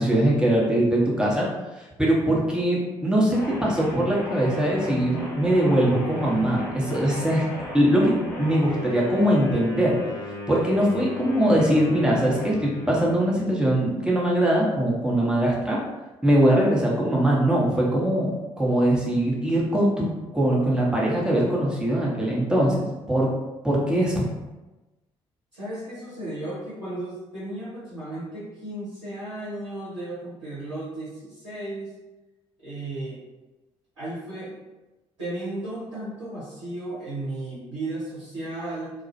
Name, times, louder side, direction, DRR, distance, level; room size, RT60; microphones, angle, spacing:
voice 1, 0.0-1.5 2.0-7.4 7.7-9.9 10.5-15.8 16.2-18.3 18.6-20.1 20.3-23.3 23.6-24.3, right 1 dB, 5° right, -4 dB, 0.8 m, -22 dB
sound 1, 3.3-13.6, left 2 dB, 65° left, 0.7 m, -35 dB
voice 2, 25.5-31.9 32.6-33.2 34.0-34.6 35.2-38.9, right 1 dB, 85° right, -11 dB, 0.7 m, -34 dB
2.3 x 2.0 x 2.6 m, 1.1 s
figure-of-eight pair, 45°, 15 cm